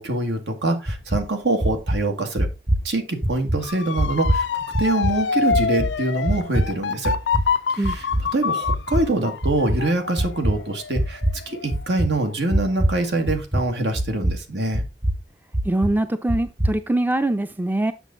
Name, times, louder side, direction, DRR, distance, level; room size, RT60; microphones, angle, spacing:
voice 1, 0.0-2.5 2.8-7.1 7.7-8.1 8.3-11.2 11.5-14.8, right 2 dB, 75° right, 1.9 m, -24 dB
sound 1, 0.9-1.2 1.6-2.0 2.4-2.9 3.2-3.6 4.0-4.4 4.7-5.1 5.5-5.9 6.3-6.7 7.1-7.5 7.8-8.3 8.7-9.0 9.4-9.8 10.2-10.5 11.0-11.4 11.7-12.1 12.5-13.0 13.3-13.7 14.0-14.3 14.7-15.2 15.5-15.9 16.3-16.7, right 1 dB, 30° right, 1.0 m, -22 dB
Motor vehicle (road) / Siren, 3.6-12.5 13.0-13.4, left 6 dB, 90° left, 0.5 m, -27 dB
voice 2, 15.6-17.9, right 1 dB, 10° right, 0.5 m, -23 dB
8.1 x 6.6 x 3.8 m
head